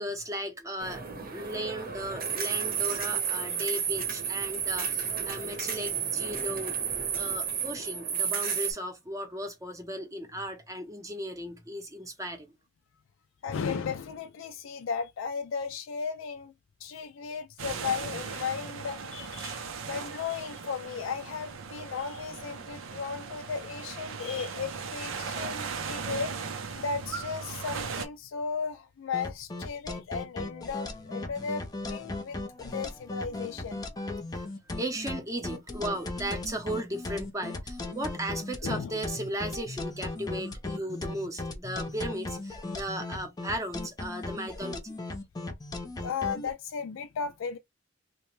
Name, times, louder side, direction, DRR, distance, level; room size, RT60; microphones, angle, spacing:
voice 1, 0.0-6.7 7.1-12.5 34.0-34.1 34.3-44.9, right 1 dB, 15° right, 0.7 m, -36 dB
sound 1, 0.8-8.7, right 7 dB, 50° right, 0.8 m, -32 dB
voice 2, 13.4-16.5 16.8-26.5 26.8-33.8 38.6-39.0 46.0-47.6, left 5 dB, 70° left, 0.4 m, -35 dB
sound 2, 17.6-28.1, right 5 dB, 80° right, 0.6 m, -38 dB
sound 3, 29.1-46.5, left 2 dB, 20° left, 0.6 m, -37 dB
2.9 x 2.1 x 3.1 m
head